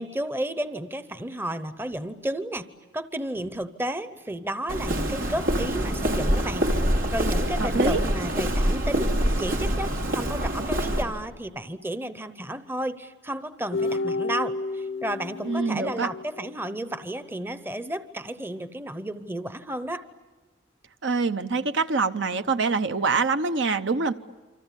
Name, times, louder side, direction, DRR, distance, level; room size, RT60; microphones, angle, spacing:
voice 1, 0.0-2.7 2.9-6.7 7.1-9.1 9.4-20.0, right 1 dB, 10° right, 12 dB, 0.8 m, -32 dB
Walk footsteps, 4.7-11.0, equal, 90° right, 3.2 m, -25 dB
voice 2, 7.6-8.0 15.4-16.1 21.0-24.1, right 4 dB, 65° right, 10 dB, 0.8 m, -25 dB
sound 1, 13.7-17.0, left 3 dB, 80° left, 0.9 m, -31 dB
28.0 x 25.5 x 8.3 m, 1.3 s
head